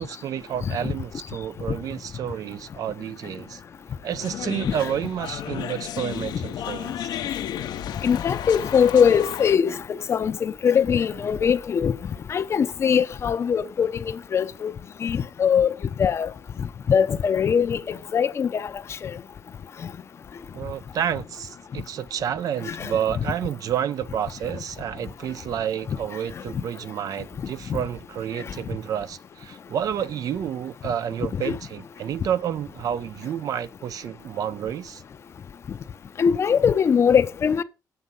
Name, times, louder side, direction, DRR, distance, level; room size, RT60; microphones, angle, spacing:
voice 1, 0.0-3.6 4.0-7.2 20.5-35.0, right 9 dB, 55° right, 0.7 m, -30 dB
voice 2, 0.6-0.9 1.7-1.8 4.6-4.9 6.3-6.4 8.0-12.0 12.3-14.7 15.0-15.7 16.0-16.3 16.9-18.7 19.0-19.1 22.7-22.9 27.7-27.8 31.4-31.5 36.2-37.6, left 7 dB, 40° left, 0.7 m, -22 dB
sound 1, 4.2-9.6, left 11 dB, 75° left, 1.0 m, -33 dB
9.3 x 7.8 x 5.5 m
cardioid pair, 160°, 7 cm